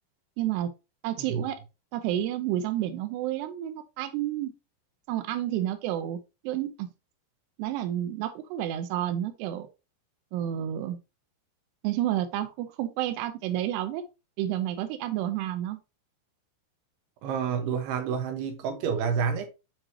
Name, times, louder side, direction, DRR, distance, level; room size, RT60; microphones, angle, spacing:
voice 1, 0.4-0.7 1.0-1.6 1.9-4.5 5.1-6.2 6.4-6.9 7.6-9.7 10.3-11.0 11.8-14.0 14.4-15.8, right 12 dB, 90° right, 2.4 m, -30 dB
voice 2, 17.2-19.5, right 6 dB, 70° right, 2.7 m, -29 dB
7.5 x 4.8 x 2.8 m
omnidirectional pair, 5.6 m